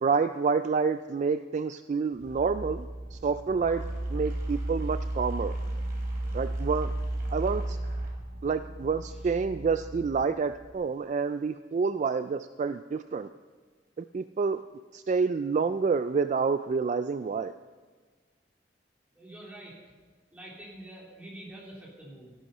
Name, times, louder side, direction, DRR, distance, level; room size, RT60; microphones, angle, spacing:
voice 1, 0.0-3.8 4.1-5.5 6.3-6.9 7.3-7.8 8.4-13.3 14.0-14.6 14.9-17.5, right 5 dB, 40° right, 11 dB, 0.3 m, -28 dB
sound 1, 2.1-10.7, right 1 dB, 60° right, 3.3 m, -34 dB
voice 2, 19.1-19.8 20.3-22.3, right 1 dB, 10° right, -5 dB, 3.5 m, -46 dB
13.5 x 11.0 x 5.5 m, 1.4 s
head